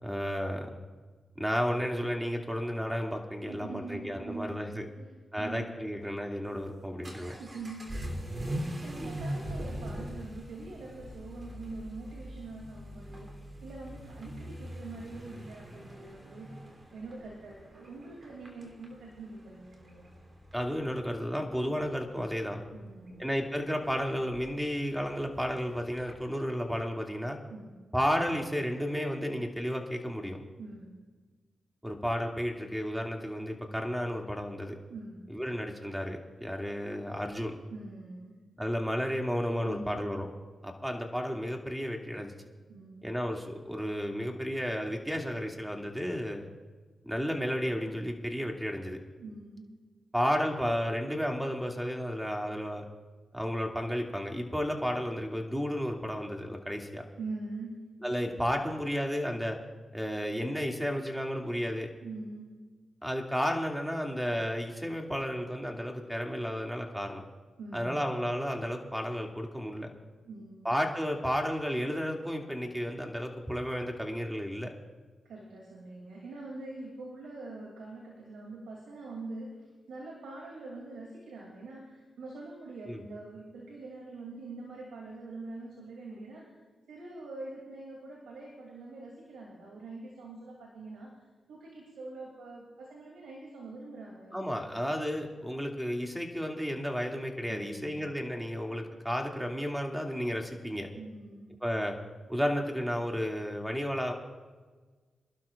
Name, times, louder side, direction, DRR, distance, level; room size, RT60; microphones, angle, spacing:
voice 1, 0.0-0.8 1.4-4.9 5.3-7.4 9.0-9.1 20.5-22.6 23.2-27.4 27.9-30.4 31.8-34.8 35.3-37.5 38.6-40.3 40.6-42.3 43.0-46.5 47.0-49.0 50.1-52.8 53.3-57.0 58.0-59.6 59.9-61.9 63.0-67.2 67.7-69.9 70.6-74.7 82.9-83.0 94.3-100.9 101.6-102.0 102.3-104.1, equal, 5° right, 1 dB, 2.4 m, -32 dB
voice 2, 3.5-4.7 5.0-5.7 7.4-13.3 13.6-16.6 16.9-20.1 22.7-23.3 27.5-27.8 30.6-31.0 34.9-35.3 37.7-38.3 39.6-40.2 42.7-43.1 49.2-49.7 57.2-57.8 62.0-62.5 67.6-68.0 70.2-70.7 75.2-86.5 86.9-91.1 91.5-94.6 97.5-98.1 100.9-101.5, right 3 dB, 80° right, -2 dB, 2.8 m, -44 dB
Vehicle / Accelerating revving vroom, 6.5-26.3, equal, 40° right, 3.2 m, -42 dB
26.5 x 12.0 x 2.5 m, 1.4 s
supercardioid pair, 45°, 0 cm